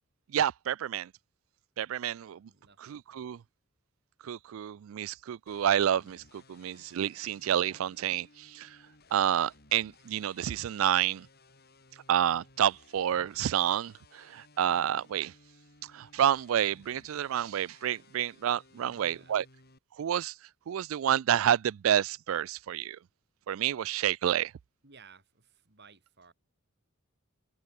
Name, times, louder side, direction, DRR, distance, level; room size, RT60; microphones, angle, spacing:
voice 1, 0.3-1.1 1.8-2.5 2.8-3.4 4.2-8.8 9.1-11.3 12.1-15.3 15.8-19.4 20.0-20.4 20.7-23.0 23.5-24.5, right 10 dB, 70° right, 0.3 m, -29 dB
voice 2, 2.5-2.8 3.1-3.4 18.7-19.4 24.8-26.3, right 5 dB, 55° right, 3.5 m, -58 dB
sound 1, 5.5-19.8, left 3 dB, 50° left, 7.0 m, -60 dB
open air
head